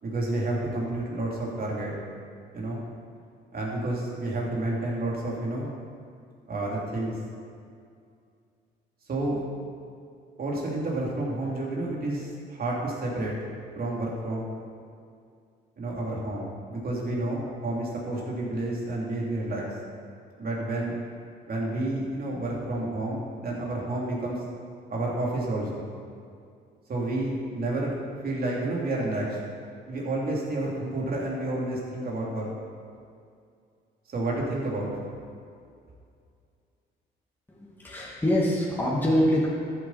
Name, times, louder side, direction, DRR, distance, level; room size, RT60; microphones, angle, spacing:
voice 1, 0.0-1.9 2.5-2.8 3.5-5.7 6.5-7.1 9.1-9.4 10.4-13.3 13.7-14.5 15.8-19.6 20.4-21.0 21.5-24.4 24.9-25.9 26.9-27.9 28.2-29.4 29.9-32.5 34.1-34.9, right 2 dB, 50° right, -3 dB, 3.1 m, -30 dB
voice 2, 37.5-39.5, equal, 10° left, -5 dB, 2.1 m, -24 dB
13.5 x 7.9 x 4.3 m, 2.3 s
cardioid pair, 90°, 20 cm